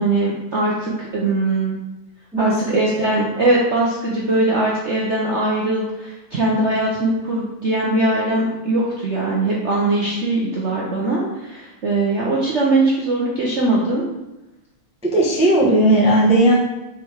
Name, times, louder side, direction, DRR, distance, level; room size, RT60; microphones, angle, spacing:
voice 1, 0.0-1.8 2.4-14.1, right 2 dB, 70° right, -4 dB, 0.6 m, -21 dB
voice 2, 15.0-16.5, right 1 dB, 5° right, -5 dB, 0.5 m, -15 dB
4.9 x 4.2 x 4.6 m, 1.0 s
omnidirectional pair, 2.4 m